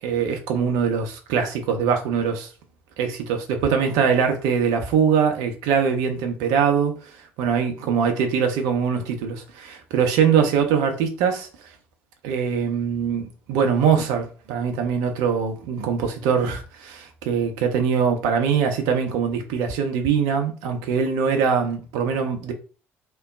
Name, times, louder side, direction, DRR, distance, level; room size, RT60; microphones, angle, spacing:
voice 1, 0.0-2.5 3.0-11.5 12.2-22.5, right 6 dB, 65° right, 0.8 m, -22 dB
3.0 x 2.2 x 3.5 m
figure-of-eight pair, 55°, 7 cm